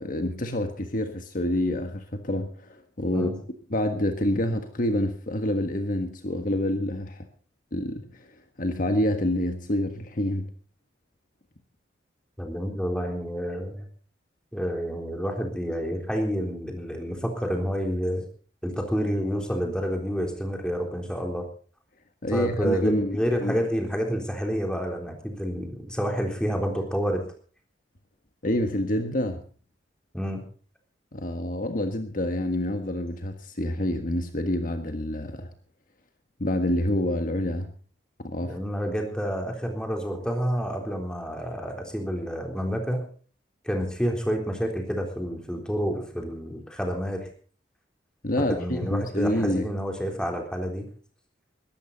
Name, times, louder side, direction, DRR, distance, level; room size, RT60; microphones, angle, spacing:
voice 1, 0.0-3.3 3.7-7.3 7.7-8.3 8.6-10.5 22.2-23.6 28.4-29.4 31.1-35.5 36.4-37.7 38.2-38.6 48.2-49.7, left 1 dB, 50° left, 7 dB, 1.5 m, -27 dB
voice 2, 12.4-13.8 14.5-18.2 18.6-21.4 22.3-27.2 30.1-30.4 38.4-43.1 43.6-47.3 48.5-50.9, equal, 5° left, 2 dB, 3.7 m, -29 dB
21.5 x 13.0 x 4.1 m, 0.41 s
head